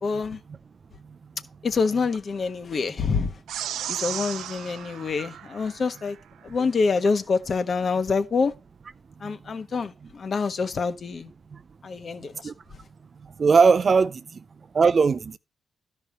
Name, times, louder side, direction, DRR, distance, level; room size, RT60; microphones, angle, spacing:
voice 1, 0.0-0.4 1.6-3.3 3.9-6.2 6.4-8.5 9.2-11.3 11.8-12.5, left 4 dB, 40° left, 1.3 m, -26 dB
sound 1, 3.5-6.1, right 10 dB, 85° right, 0.6 m, -35 dB
voice 2, 13.4-14.2 14.7-15.4, right 5 dB, 40° right, 0.5 m, -19 dB
12.5 x 5.6 x 4.3 m
cardioid pair, 115°, 0 cm